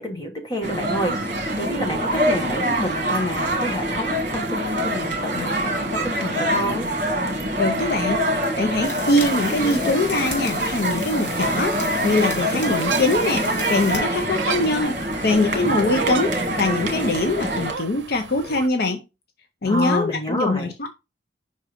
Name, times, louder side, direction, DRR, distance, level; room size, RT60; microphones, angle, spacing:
voice 1, 0.0-5.7 6.0-6.9 19.7-20.7, equal, 20° left, 1.3 m, -28 dB
sound 1, 0.6-17.7, right 1 dB, 45° right, 1.6 m, -25 dB
voice 2, 7.6-8.2 8.6-19.0 19.6-20.9, left 2 dB, 55° left, 0.6 m, -23 dB
sound 2, 8.8-14.0, left 3 dB, 80° left, 2.6 m, -37 dB
sound 3, 11.9-18.7, right 6 dB, 80° right, 0.6 m, -34 dB
5.4 x 3.7 x 4.9 m
head